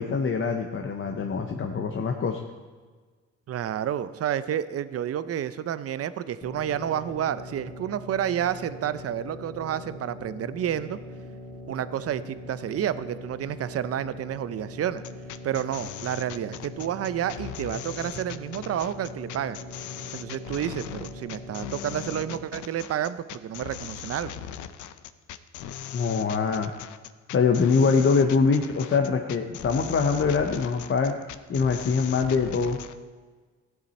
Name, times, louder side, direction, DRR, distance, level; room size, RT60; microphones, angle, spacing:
voice 1, 0.0-2.4 25.9-26.7 27.3-31.1 31.5-32.8, left 5 dB, 40° left, 4 dB, 0.9 m, -24 dB
voice 2, 3.5-11.0 11.7-15.0 15.4-19.6 20.1-24.3, right 10 dB, 50° right, 14 dB, 0.6 m, -30 dB
sound 1, 6.4-22.4, left 2 dB, 25° left, 1.9 m, -42 dB
sound 2, 15.0-33.0, left 11 dB, 75° left, 0.6 m, -39 dB
14.5 x 9.6 x 4.2 m, 1.4 s
cardioid pair, 90°, 30 cm